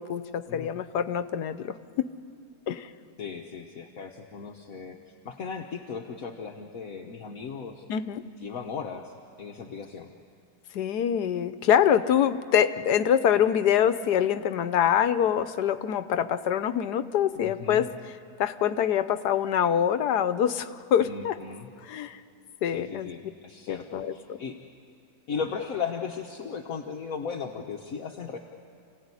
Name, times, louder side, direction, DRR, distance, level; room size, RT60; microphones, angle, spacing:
voice 1, 0.0-2.1 2.7-2.9 7.9-8.2 10.7-17.9 18.4-21.4 21.8-22.2 22.6-23.1 23.7-24.4, left 9 dB, 85° left, 12 dB, 1.4 m, -25 dB
voice 2, 3.2-5.0 5.2-7.8 8.4-9.1 9.4-10.1 17.4-17.9 21.0-21.7 22.6-24.6 25.3-28.4, left 6 dB, 60° left, 2 dB, 1.5 m, -36 dB
28.5 x 17.0 x 9.8 m, 2.6 s
omnidirectional pair, 1.7 m